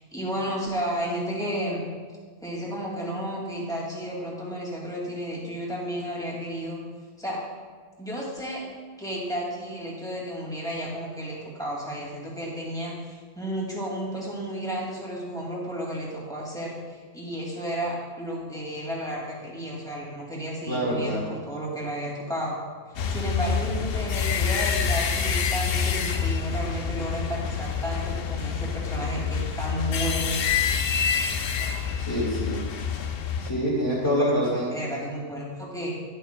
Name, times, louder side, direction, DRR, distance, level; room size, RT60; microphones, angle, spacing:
voice 1, 0.0-1.8 2.4-6.8 7.2-7.4 8.0-8.6 9.0-22.5 23.1-30.4 34.0-35.9, equal, 5° left, -4 dB, 2.2 m, -32 dB
voice 2, 20.7-21.2 32.1-32.6 33.4-34.7, equal, 20° left, -8 dB, 2.1 m, -25 dB
sound 1, 22.9-33.5, left 6 dB, 55° left, 0.7 m, -27 dB
11.0 x 11.0 x 2.2 m, 1.5 s
omnidirectional pair, 1.3 m